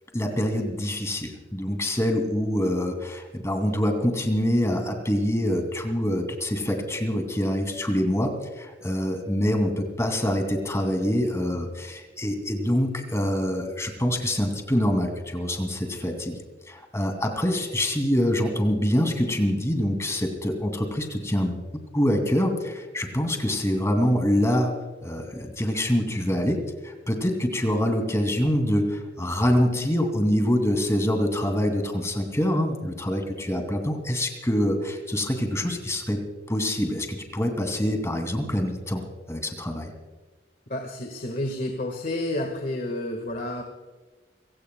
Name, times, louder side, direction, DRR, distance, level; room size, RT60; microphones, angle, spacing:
voice 1, 0.1-8.3 8.6-16.4 16.7-21.6 21.9-24.7 25.0-36.2 36.5-39.0 39.3-39.9, equal, 15° left, 4 dB, 2.6 m, -25 dB
voice 2, 40.7-43.6, left 1 dB, 50° left, 3 dB, 1.7 m, -30 dB
29.5 x 17.0 x 2.3 m, 1.3 s
head